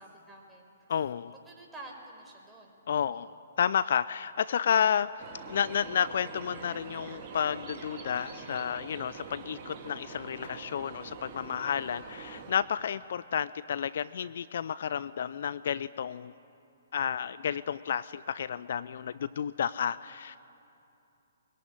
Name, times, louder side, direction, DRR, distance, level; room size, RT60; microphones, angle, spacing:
voice 1, 0.0-0.7 1.4-2.8 3.1-3.3, right 2 dB, 10° right, -1 dB, 5.3 m, -50 dB
voice 2, 0.9-1.3 2.9-5.1 5.5-16.3 16.9-20.4, left 8 dB, 55° left, 17 dB, 0.5 m, -31 dB
sound 1, 5.2-12.5, right 4 dB, 35° right, 3.1 m, -45 dB
22.0 x 21.5 x 9.6 m, 2.7 s
figure-of-eight pair, 125°, 0 cm